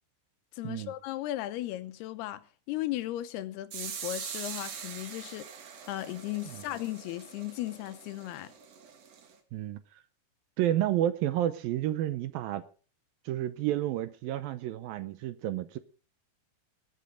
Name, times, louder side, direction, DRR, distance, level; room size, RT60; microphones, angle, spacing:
voice 1, 0.5-5.5 5.9-8.5, left 15 dB, 80° left, 2.8 m, -36 dB
sound 1, 3.7-9.4, right 7 dB, 55° right, 2.1 m, -43 dB
voice 2, 9.5-10.0 10.6-12.6 13.3-15.8, right 12 dB, 75° right, 2.3 m, -30 dB
20.0 x 8.4 x 5.1 m
omnidirectional pair, 4.7 m